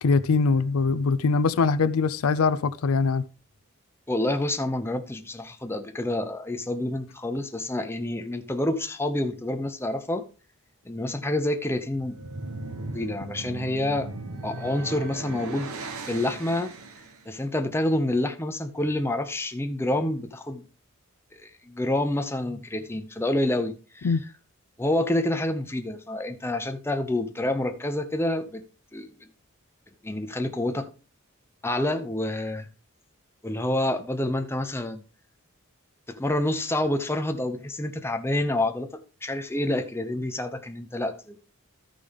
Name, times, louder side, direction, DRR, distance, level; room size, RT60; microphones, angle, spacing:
voice 1, 0.0-3.2 24.0-24.2, left 4 dB, 85° left, 0.5 m, -22 dB
voice 2, 4.1-10.3 10.8-12.2 12.9-14.1 14.4-15.7 16.1-16.7 17.3-20.6 21.3-24.2 24.8-28.6 28.9-29.3 30.0-30.9 31.6-32.7 33.4-35.0 36.1-41.4, left 1 dB, 10° left, 0.7 m, -28 dB
sound 1, 11.9-17.3, right 2 dB, 85° right, 1.0 m, -37 dB
13.5 x 5.1 x 3.5 m
head